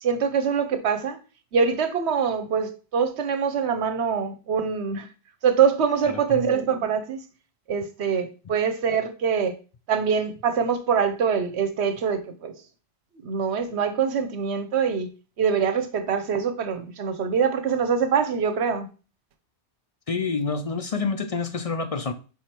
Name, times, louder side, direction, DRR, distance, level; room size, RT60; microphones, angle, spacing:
voice 1, 0.0-1.2 1.5-5.1 5.4-7.2 7.7-9.6 9.9-12.5 13.2-15.1 15.4-18.9, right 6 dB, 70° right, 1.0 m, -24 dB
voice 2, 6.1-6.4 20.1-22.1, left 4 dB, 50° left, 0.4 m, -28 dB
5.3 x 4.9 x 4.4 m
omnidirectional pair, 1.2 m